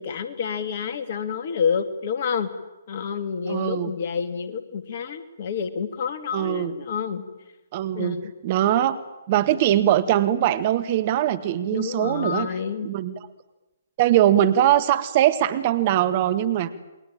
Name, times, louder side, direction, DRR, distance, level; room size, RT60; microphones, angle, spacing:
voice 1, 0.0-2.5 2.9-7.2 7.9-8.4 11.7-12.9, left 6 dB, 45° left, 10 dB, 2.4 m, -28 dB
voice 2, 3.5-3.9 6.3-6.7 7.7-8.2 8.4-9.0 9.3-12.5 12.8-13.1 14.0-16.7, right 12 dB, 35° right, 11 dB, 1.9 m, -21 dB
28.5 x 21.5 x 8.9 m, 0.99 s
figure-of-eight pair, 130°, 0 cm